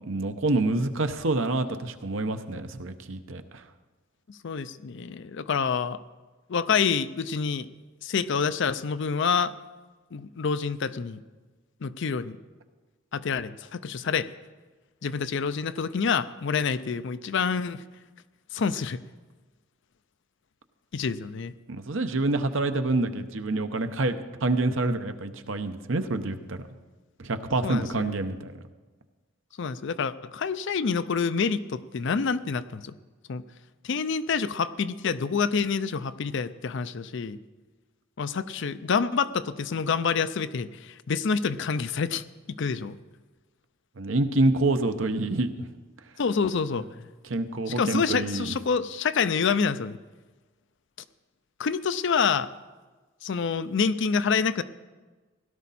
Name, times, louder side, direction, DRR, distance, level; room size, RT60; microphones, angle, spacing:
voice 1, 0.1-3.6 21.7-26.6 27.2-28.5 44.0-45.5 46.7-46.8 47.2-48.5, right 2 dB, 70° right, 8 dB, 0.9 m, -27 dB
voice 2, 4.3-6.0 6.5-7.7 8.0-9.5 10.1-11.2 11.8-12.3 13.1-14.3 15.0-17.8 18.5-19.0 20.9-21.5 27.6-28.1 29.6-32.9 33.3-33.4 33.8-37.4 38.2-42.2 42.5-43.0 46.2-46.9 47.7-50.0 51.6-52.5 53.2-54.6, left 5 dB, 60° left, 14 dB, 0.5 m, -27 dB
17.0 x 12.0 x 4.2 m, 1.3 s
head